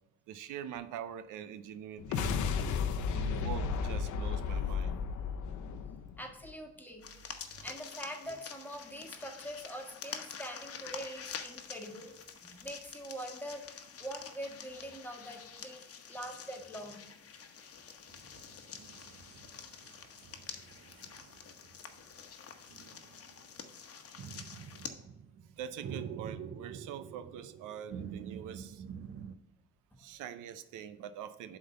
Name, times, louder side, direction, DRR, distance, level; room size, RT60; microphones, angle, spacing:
voice 1, 0.3-2.3 3.1-5.0 25.6-28.8 30.0-31.6, right 9 dB, 85° right, 12 dB, 0.6 m, -44 dB
sound 1, 2.0-6.5, left 6 dB, 80° left, 0.8 m, -33 dB
voice 2, 6.2-7.1 7.6-12.1 12.4-13.6 14.0-15.8 16.1-17.0 20.5-20.6, equal, 5° left, 2 dB, 1.6 m, -44 dB
sound 2, 7.0-24.9, left 7 dB, 50° left, 1.1 m, -47 dB
sound 3, 18.1-22.0 22.7-23.8 24.2-29.4, right 7 dB, 50° right, 0.6 m, -47 dB
7.7 x 3.9 x 6.6 m, 0.86 s
cardioid pair, 90°, 30 cm